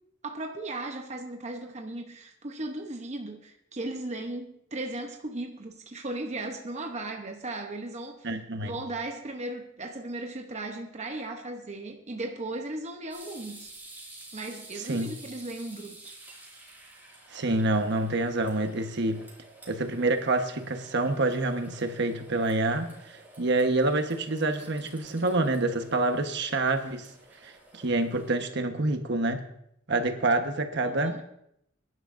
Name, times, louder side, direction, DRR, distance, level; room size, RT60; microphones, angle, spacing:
voice 1, 0.2-8.3 8.6-13.7 14.3-16.1 30.8-31.2, right 2 dB, 35° right, 3 dB, 0.8 m, -37 dB
voice 2, 8.2-8.8 14.9-15.1 17.3-19.2 19.7-27.1 27.4-29.4 29.9-31.2, right 2 dB, 60° right, 6 dB, 1.2 m, -27 dB
sound 1, 13.1-28.4, right 2 dB, 10° right, 4.2 m, -51 dB
22.0 x 11.0 x 2.6 m, 0.75 s
head